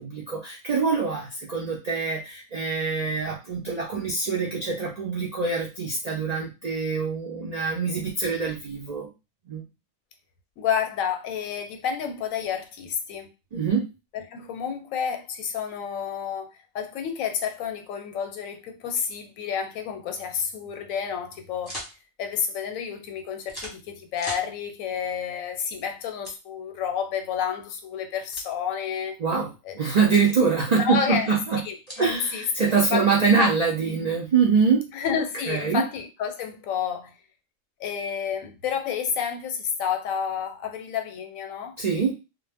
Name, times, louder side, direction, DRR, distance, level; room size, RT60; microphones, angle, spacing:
voice 1, 0.0-9.1 9.5-9.6 13.5-13.9 29.2-31.6 32.0-34.9 35.5-35.8 41.8-42.2, right 5 dB, 75° right, 0.3 m, -24 dB
voice 2, 10.6-13.3 14.1-16.5 16.7-21.8 22.2-29.2 29.6-29.8 30.8-31.3 31.6-33.1 33.4-33.5 34.9-37.2 37.8-41.7, left 7 dB, 85° left, 1.0 m, -30 dB
sound 1, 21.6-21.9 23.5-23.8 24.2-24.5 26.2-26.4 28.3-28.5 30.1-30.4 31.9-32.1, equal, 20° left, 0.7 m, -37 dB
2.1 x 2.1 x 3.3 m
omnidirectional pair, 1.4 m